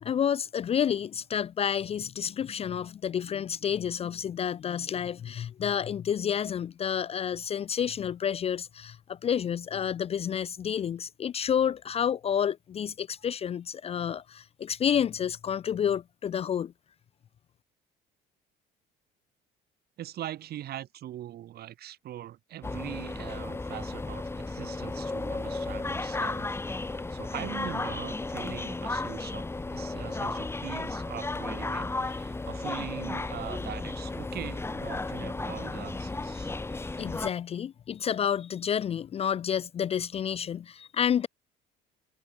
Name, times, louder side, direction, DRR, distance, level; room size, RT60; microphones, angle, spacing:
voice 1, 0.0-16.7 37.0-41.3, left 8 dB, 35° left, 0.4 m, -30 dB
voice 2, 20.0-26.6 26.9-36.5, right 12 dB, 60° right, 2.7 m, -42 dB
sound 1, 22.6-37.3, left 3 dB, 15° left, 1.3 m, -34 dB
supercardioid pair, 90°, 19 cm